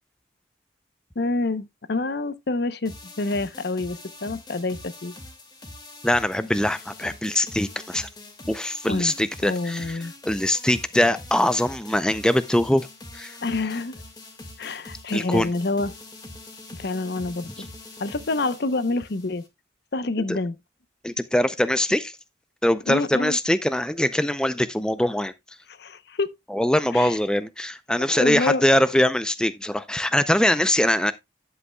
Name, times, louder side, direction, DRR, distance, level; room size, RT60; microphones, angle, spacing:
voice 1, 1.2-5.1 8.9-9.1 9.4-10.1 13.4-14.0 14.6-15.9 16.7-17.7 18.0-19.4 19.9-20.6 22.9-23.4 25.8-26.3 26.9-27.2 28.1-28.6, left 3 dB, 60° left, 0.7 m, -27 dB
sound 1, 2.9-19.5, left 2 dB, 20° left, 1.8 m, -43 dB
voice 2, 6.0-8.1 8.5-12.9 13.1-13.3 15.1-15.5 20.3-20.4 21.0-22.1 22.6-25.3 26.5-31.1, left 1 dB, 5° left, 0.4 m, -22 dB
11.0 x 7.8 x 2.2 m
head